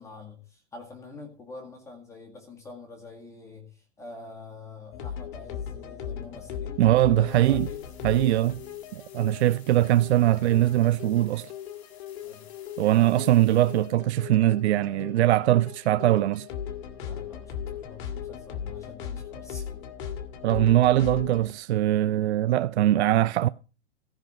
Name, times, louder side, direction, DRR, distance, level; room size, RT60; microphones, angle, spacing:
voice 1, 0.0-7.9 9.3-9.5 12.2-12.5 17.0-19.8, left 3 dB, 10° left, 2.0 m, -46 dB
sound 1, 4.9-21.5, left 8 dB, 45° left, 1.9 m, -38 dB
voice 2, 6.8-7.7 8.0-8.6 8.9-11.5 12.8-16.5 20.4-23.5, right 14 dB, 65° right, 0.5 m, -21 dB
sound 2, 7.3-14.0, left 8 dB, 65° left, 2.3 m, -56 dB
15.0 x 5.9 x 7.5 m
hypercardioid pair, 160°, 36 cm